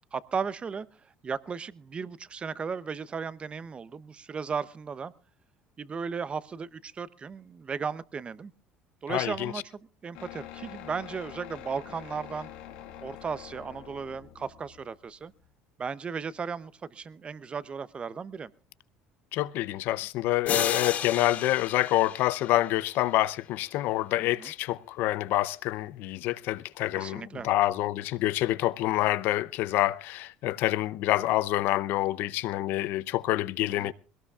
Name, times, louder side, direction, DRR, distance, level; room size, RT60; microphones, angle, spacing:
voice 1, 0.1-0.9 1.2-5.1 5.8-8.5 9.0-12.5 13.0-15.3 15.8-18.5 24.4-24.5 26.9-27.5 33.8-33.9, right 5 dB, 30° right, 0.7 m, -35 dB
voice 2, 9.1-9.5 19.3-33.9, left 16 dB, 65° left, 0.6 m, -27 dB
sound 1, 10.1-15.5, left 11 dB, 90° left, 1.6 m, -46 dB
sound 2, 20.5-23.3, left 8 dB, 50° left, 2.8 m, -33 dB
21.5 x 18.0 x 2.4 m
supercardioid pair, 90°, 4 cm